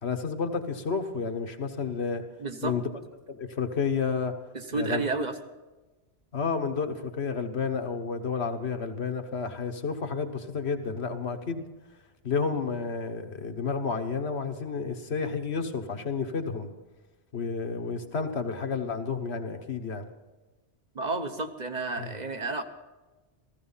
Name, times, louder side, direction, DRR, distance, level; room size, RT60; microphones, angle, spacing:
voice 1, 0.0-2.2 2.6-2.9 3.3-4.3 4.7-5.0 6.3-11.6 12.2-16.7 17.3-20.1 22.0-22.1, left 5 dB, 80° left, 7 dB, 1.5 m, -31 dB
voice 2, 2.4-2.7 4.7-5.3 20.9-22.6, right 3 dB, 45° right, 7 dB, 1.1 m, -31 dB
15.5 x 15.0 x 5.6 m, 1.2 s
omnidirectional pair, 1.1 m